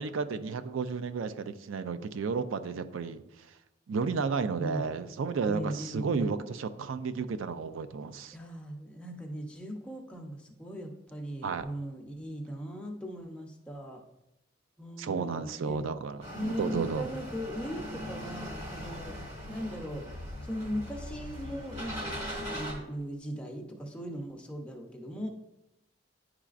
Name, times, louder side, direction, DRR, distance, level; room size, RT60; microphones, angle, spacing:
voice 1, 0.0-3.6 3.9-8.4 11.4-11.7 15.0-17.1, right 5 dB, 80° right, 11 dB, 0.4 m, -33 dB
voice 2, 4.6-4.9 5.4-6.3 8.3-14.0 14.8-15.8 16.3-20.1 20.4-25.3, equal, 5° left, 1 dB, 0.7 m, -38 dB
sound 1, 16.2-22.7, equal, 30° right, 1.7 m, -40 dB
10.0 x 4.9 x 2.5 m, 0.89 s
head